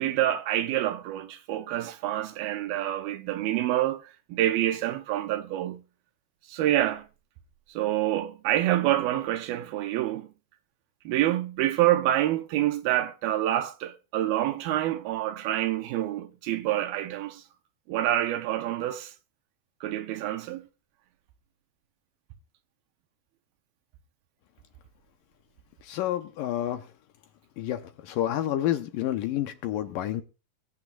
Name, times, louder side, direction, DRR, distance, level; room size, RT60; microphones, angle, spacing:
voice 1, 0.0-4.0 4.3-5.8 6.5-7.1 7.8-10.3 11.1-17.4 17.9-19.1 19.8-20.7, right 13 dB, 80° right, 2.5 m, -27 dB
voice 2, 25.8-26.9 27.6-30.2, left 12 dB, 75° left, 2.2 m, -29 dB
23.0 x 8.7 x 2.3 m
omnidirectional pair, 4.4 m